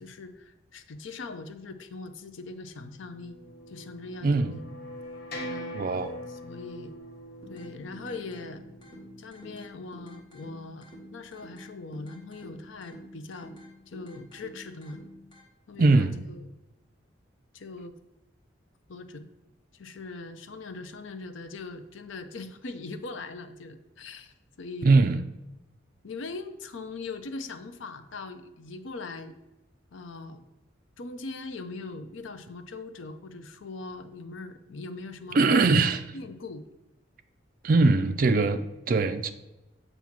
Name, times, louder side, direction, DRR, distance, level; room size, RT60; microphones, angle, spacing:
voice 1, 0.0-3.4 3.7-4.6 5.4-5.8 6.3-7.0 7.5-8.6 9.2-13.5 13.9-15.0 15.7-16.5 17.5-17.9 18.9-19.3 19.7-25.0 26.0-29.3 29.9-30.4 31.0-35.7 36.1-36.7, left 3 dB, 75° left, 0.5 m, -41 dB
sound 1, 2.9-9.2, equal, 50° left, 0.9 m, -42 dB
voice 2, 4.2-4.5 5.7-6.2 15.8-16.1 24.8-25.2 35.3-36.0 37.6-39.3, right 3 dB, 45° right, 0.4 m, -21 dB
sound 2, 7.4-15.4, equal, 25° left, 1.2 m, -49 dB
7.2 x 2.7 x 5.8 m
head